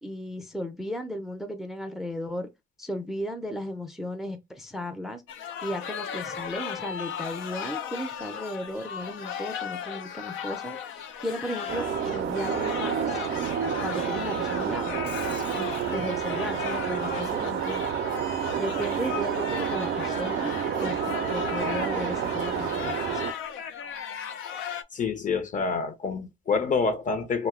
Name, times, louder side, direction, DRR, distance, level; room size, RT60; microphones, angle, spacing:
voice 1, 0.0-2.5 2.8-5.2 5.6-13.2 13.8-15.0 15.5-17.8 18.6-23.2, equal, ahead, 0.4 m, -35 dB
sound 1, 5.3-24.8, left 8 dB, 80° left, 0.4 m, -36 dB
sound 2, 11.7-23.3, right 8 dB, 60° right, 0.4 m, -29 dB
Shatter, 14.9-16.0, left 4 dB, 60° left, 1.1 m, -47 dB
voice 2, 24.9-27.5, left 5 dB, 40° left, 0.6 m, -27 dB
2.6 x 2.1 x 3.6 m
cardioid pair, 90°, 20 cm